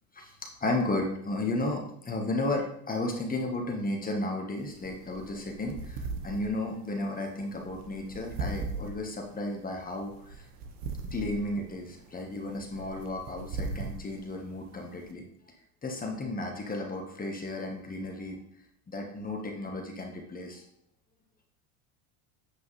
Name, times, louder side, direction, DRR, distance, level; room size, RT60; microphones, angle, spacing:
voice 1, 0.6-10.1 11.1-15.3 15.8-18.4 18.9-20.6, left 2 dB, 20° left, 2 dB, 1.3 m, -33 dB
sound 1, 4.6-15.1, right 3 dB, 60° right, 1.2 m, -40 dB
8.4 x 5.1 x 3.3 m, 0.72 s
supercardioid pair, 105°, 45 cm